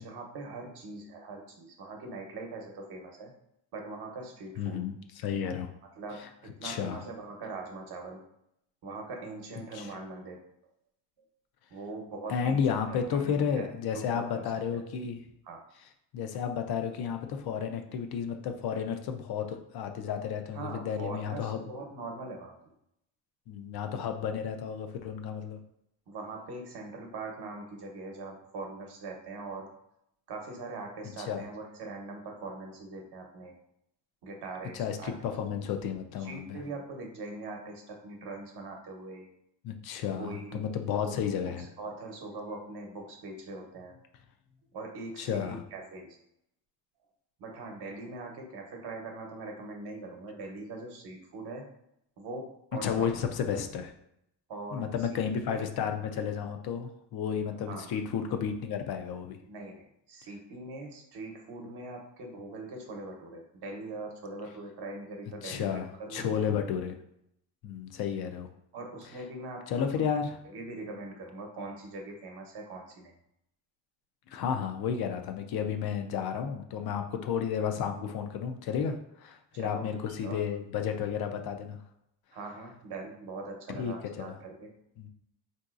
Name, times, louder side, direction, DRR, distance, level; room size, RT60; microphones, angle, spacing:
voice 1, 0.0-3.3 3.7-4.8 6.0-8.2 8.8-10.4 11.7-12.6 12.9-14.5 15.5-15.6 20.6-22.5 26.1-29.7 30.3-33.6 34.2-35.1 36.2-39.3 40.2-40.6 40.9-41.2 41.4-44.0 44.7-46.1 47.4-51.7 52.2-53.1 54.5-54.9 55.4-55.6 57.7-57.9 59.5-66.4 68.7-70.0 70.5-73.1 79.6-79.9 80.2-80.4 82.3-84.7, right 2 dB, 65° right, 1 dB, 0.9 m, -42 dB
voice 2, 4.6-5.7 6.1-6.3 6.6-7.0 9.7-9.9 12.3-15.2 15.8-15.9 16.1-21.7 23.5-25.6 31.2-31.4 34.7-36.6 39.6-41.7 45.2-45.6 52.8-53.9 54.7-59.4 65.4-67.0 67.6-68.5 69.0-69.2 69.7-70.4 74.3-81.8 83.7-84.4 85.0-85.1, left 7 dB, 60° left, 6 dB, 0.5 m, -32 dB
3.7 x 2.7 x 2.4 m, 0.77 s
cardioid pair, 110°, 43 cm